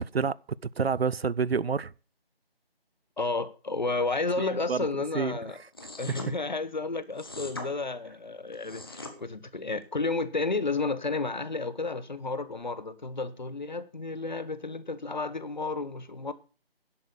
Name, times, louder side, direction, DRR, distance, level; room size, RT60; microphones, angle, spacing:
voice 1, 0.8-1.9 4.4-4.9 5.1-5.3, right 5 dB, 80° right, 0.7 m, -28 dB
voice 2, 3.2-5.6 6.0-16.3, left 3 dB, 45° left, 1.1 m, -32 dB
sound 1, 5.7-6.3 7.2-7.7 8.5-9.1, left 2 dB, 25° left, 1.3 m, -40 dB
11.0 x 8.5 x 6.8 m
figure-of-eight pair, 175°, 31 cm